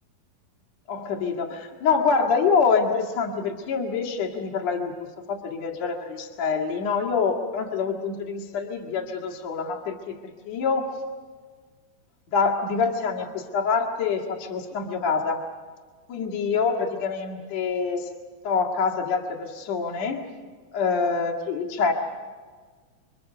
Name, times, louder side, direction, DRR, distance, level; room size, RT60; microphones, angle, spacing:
voice 1, 0.9-11.0 12.3-15.4 16.1-18.1 18.4-20.3 20.7-21.9, left 5 dB, 50° left, 1 dB, 3.0 m, -26 dB
28.5 x 24.0 x 6.9 m, 1.5 s
omnidirectional pair, 4.2 m